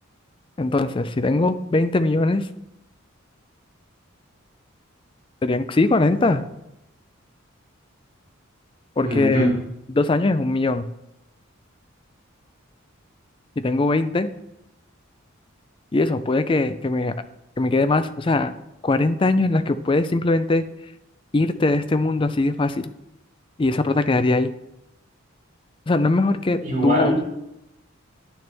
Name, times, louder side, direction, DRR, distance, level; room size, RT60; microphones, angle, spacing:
voice 1, 0.6-2.5 5.4-6.4 9.0-9.5 9.9-10.9 13.6-14.3 15.9-17.1 17.6-18.5 18.8-20.6 21.3-22.9 23.6-24.5 25.9-27.2, left 2 dB, 25° left, 11 dB, 0.4 m, -21 dB
voice 2, 9.0-9.5 26.6-27.3, equal, 35° right, -4 dB, 3.6 m, -22 dB
10.5 x 6.7 x 3.4 m, 0.88 s
head